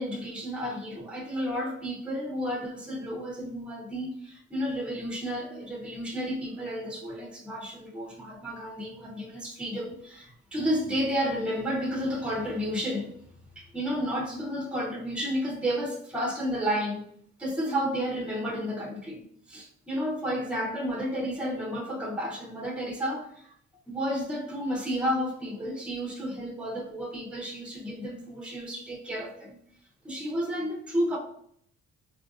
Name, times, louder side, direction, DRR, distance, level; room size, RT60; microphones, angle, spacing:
voice 1, 0.0-13.1 13.6-17.0 17.4-23.5 23.9-29.6 30.0-31.2, equal, 5° right, 0.7 m, -32 dB
4.2 x 2.6 x 2.4 m
cardioid pair, 90°, 30 cm